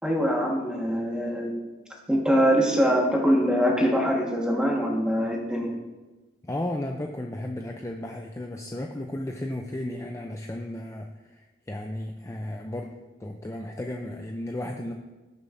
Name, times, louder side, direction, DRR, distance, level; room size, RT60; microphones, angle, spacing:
voice 1, 0.0-1.6 2.1-5.7, equal, 5° right, -1 dB, 1.4 m, -23 dB
voice 2, 6.4-11.1 11.7-12.9 13.2-14.9, left 1 dB, 15° left, 2 dB, 0.4 m, -34 dB
18.0 x 6.5 x 2.6 m, 1.2 s
head